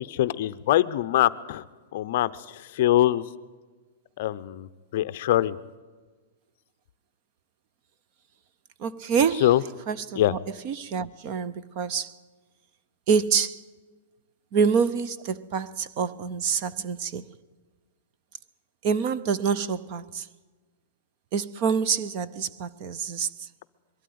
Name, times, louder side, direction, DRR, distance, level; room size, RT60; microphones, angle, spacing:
voice 1, 0.0-1.6 1.9-3.2 4.2-5.6 9.4-9.6 10.1-10.3, left 13 dB, 45° left, 0.6 m, -23 dB
voice 2, 8.8-9.5 9.9-10.4 10.6-12.1 13.1-13.6 14.5-17.2 18.8-20.3 21.3-23.5, right 6 dB, 30° right, 0.6 m, -26 dB
22.5 x 13.0 x 9.4 m
supercardioid pair, 180°, 0 cm